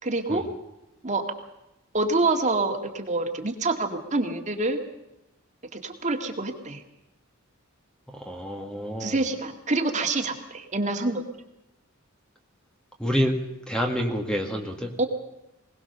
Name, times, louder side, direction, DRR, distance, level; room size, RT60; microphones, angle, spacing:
voice 1, 0.0-0.5 1.0-1.3 1.9-4.8 5.7-6.8 9.0-11.2 15.0-15.1, right 2 dB, 35° right, 4 dB, 2.1 m, -26 dB
voice 2, 8.1-9.2 13.0-14.9, equal, 5° left, 3 dB, 1.9 m, -28 dB
21.5 x 19.0 x 6.8 m, 0.91 s
head